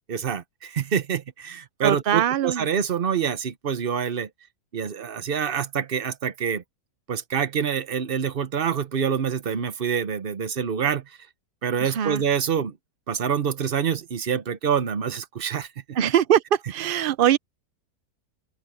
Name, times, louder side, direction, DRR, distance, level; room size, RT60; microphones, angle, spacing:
voice 1, 0.1-4.3 4.7-6.6 7.1-11.0 11.6-12.7 13.1-15.7, right 7 dB, 40° right, 0.9 m, -26 dB
voice 2, 1.8-2.7 11.8-12.2 15.9-17.4, right 10 dB, 85° right, 0.4 m, -22 dB
open air
omnidirectional pair, 1.7 m